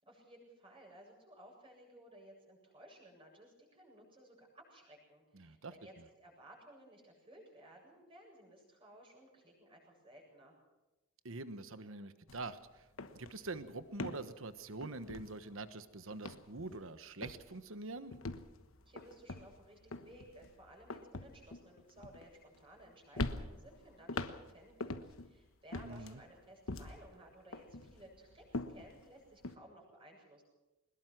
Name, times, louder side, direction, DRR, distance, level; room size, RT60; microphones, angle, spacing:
voice 1, 0.0-10.6 18.8-30.4, right 1 dB, 25° right, 0 dB, 8.0 m, -58 dB
voice 2, 5.3-5.7 11.2-12.6 13.1-18.1 25.8-26.2, right 2 dB, 65° right, 11 dB, 1.2 m, -45 dB
sound 1, 12.3-12.5 12.8-15.8 16.1-16.9 17.2-17.6 18.1-22.8 23.1-25.3 25.7-27.1 27.5-29.6, left 2 dB, 70° left, 1.2 m, -44 dB
22.0 x 20.5 x 6.1 m, 1.0 s
head